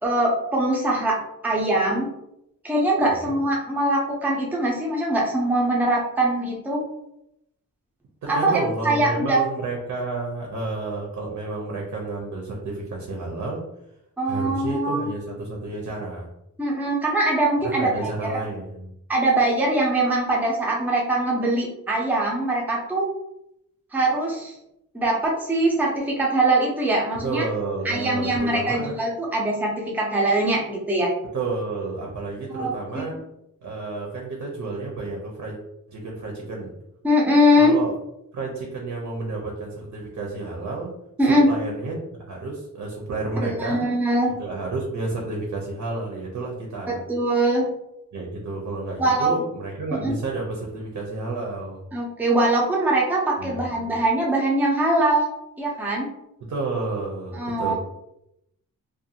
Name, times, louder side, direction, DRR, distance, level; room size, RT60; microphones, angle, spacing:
voice 1, 0.0-1.2 1.4-2.1 2.6-6.8 8.3-9.4 14.2-15.1 16.6-17.9 19.1-23.1 23.9-24.5 24.9-27.4 27.8-31.1 32.5-33.1 37.0-37.8 41.2-41.5 43.4-44.4 46.9-47.7 49.0-49.4 50.0-50.1 51.9-55.3 55.6-56.1 57.3-57.7, right 1 dB, 5° right, -3 dB, 0.5 m, -22 dB
voice 2, 8.2-13.6 14.2-16.3 17.6-18.9 27.2-29.0 31.3-33.2 33.6-35.6 35.9-36.7 37.6-37.9 38.3-40.9 41.2-43.8 44.4-47.0 48.1-51.8 53.4-53.9 56.4-57.8, right 3 dB, 60° right, -1 dB, 0.6 m, -31 dB
2.5 x 2.2 x 2.7 m, 0.83 s
wide cardioid pair, 150°, 33 cm